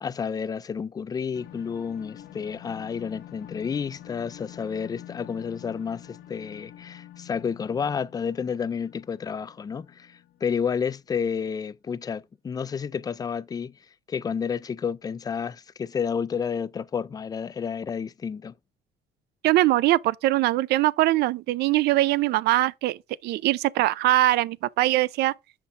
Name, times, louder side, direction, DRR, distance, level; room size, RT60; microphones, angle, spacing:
voice 1, 0.0-13.8 14.1-18.5, left 6 dB, 20° left, 0.3 m, -30 dB
sound 1, 1.3-10.7, left 12 dB, 65° left, 0.7 m, -46 dB
voice 2, 19.4-25.3, right 16 dB, 75° right, 0.4 m, -22 dB
5.8 x 5.6 x 3.2 m
cardioid pair, 110°, 17 cm